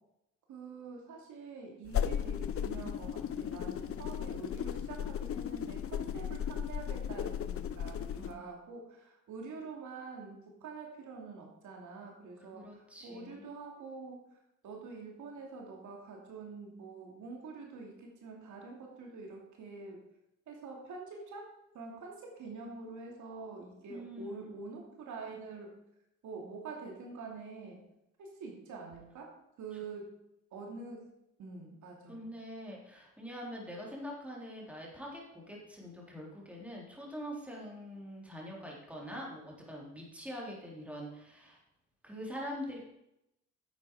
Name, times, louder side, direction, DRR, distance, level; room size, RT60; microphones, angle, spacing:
voice 1, 0.5-14.4 14.6-20.0 20.5-21.5 21.7-25.7 26.2-27.8 28.2-29.3 29.6-30.1 30.5-31.0 31.4-32.2, right 4 dB, 75° right, 0 dB, 2.7 m, -46 dB
sound 1, 1.9-8.3, left 9 dB, 50° left, 0.7 m, -36 dB
voice 2, 12.5-13.4 23.9-24.5 32.1-41.6 42.0-42.8, equal, 5° right, -3 dB, 3.7 m, -44 dB
10.5 x 8.2 x 4.9 m, 0.84 s
cardioid pair, 90°, 30 cm